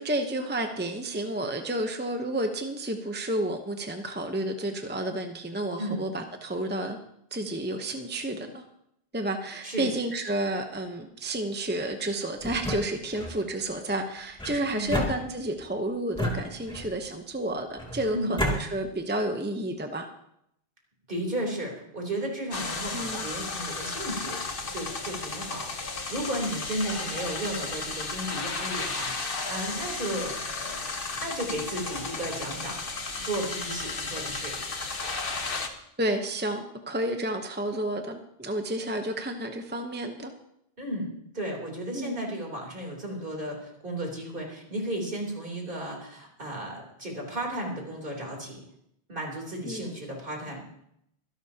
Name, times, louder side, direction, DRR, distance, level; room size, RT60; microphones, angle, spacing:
voice 1, 0.0-7.0 7.3-8.6 9.1-20.1 22.9-23.3 36.0-40.3 41.9-42.2 49.6-49.9, right 1 dB, 10° right, 5 dB, 0.8 m, -31 dB
sound 1, 12.4-13.4 14.4-15.6 16.1-17.0 17.8-18.6, equal, 5° left, 2.4 m, -31 dB
voice 2, 21.1-24.4 24.7-30.9 31.2-34.5 40.8-48.6 49.1-50.6, right 1 dB, 55° right, -1 dB, 3.7 m, -34 dB
sound 2, 22.5-35.7, left 3 dB, 60° left, 1.4 m, -34 dB
24.5 x 11.0 x 2.9 m, 0.76 s
omnidirectional pair, 1.0 m